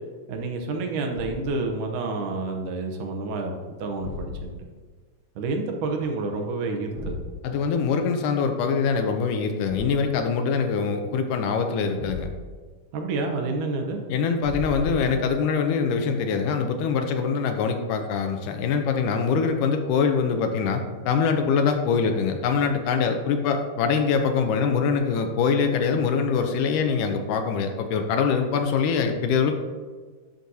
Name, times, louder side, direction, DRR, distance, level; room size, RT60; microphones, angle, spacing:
voice 1, 0.3-4.5 5.4-7.2 12.9-14.0, right 3 dB, 75° right, 3 dB, 2.3 m, -29 dB
Thump thud, 1.1-1.6 4.0-4.7 6.9-7.4 9.7-10.2 12.0-12.6 14.4-15.4, left 2 dB, 60° right, 1.1 m, -36 dB
voice 2, 7.4-12.3 14.1-29.5, left 5 dB, 80° left, 5 dB, 2.1 m, -24 dB
10.5 x 6.1 x 2.7 m, 1.5 s
omnidirectional pair, 3.8 m